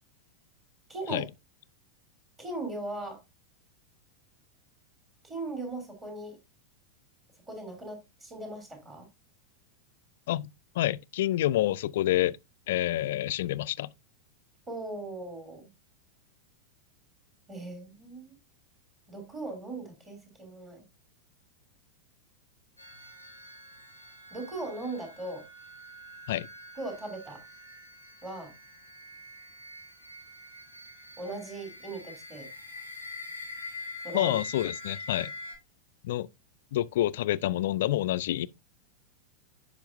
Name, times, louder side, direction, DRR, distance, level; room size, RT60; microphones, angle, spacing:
voice 1, 0.9-1.3 2.4-3.2 5.2-6.4 7.5-9.1 14.7-15.7 17.5-18.4 19.1-20.8 24.3-25.4 26.8-27.4 28.2-28.5 31.2-32.5 34.0-34.4, right 2 dB, 20° right, 3.0 m, -38 dB
voice 2, 10.8-12.4 12.7-13.9 26.3-26.5 34.1-35.3 36.0-36.3 36.7-38.5, left 14 dB, 55° left, 0.3 m, -28 dB
sound 1, 22.8-35.5, left 2 dB, 90° right, 3.3 m, -45 dB
10.0 x 5.2 x 2.6 m
figure-of-eight pair, 90°, 0 cm